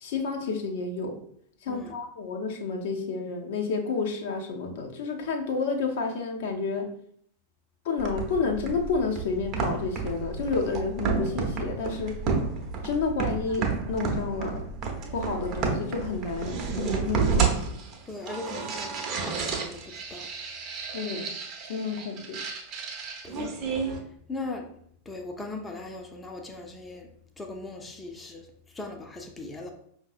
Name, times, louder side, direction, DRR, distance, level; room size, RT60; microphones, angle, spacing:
voice 1, 0.0-1.2 1.7-6.9 7.8-12.1 12.8-14.6 15.1-17.5 20.8-21.3 21.7-22.4, left 4 dB, 55° left, 3 dB, 0.6 m, -30 dB
voice 2, 1.7-2.0 18.1-19.0 19.2-20.4 23.2-23.7 24.0-24.7 25.1-27.1 27.4-29.7, left 2 dB, 10° left, 2 dB, 0.5 m, -39 dB
sound 1, 8.0-24.0, right 5 dB, 35° right, 0.7 m, -31 dB
5.2 x 2.6 x 2.5 m, 0.67 s
figure-of-eight pair, 90°, 0 cm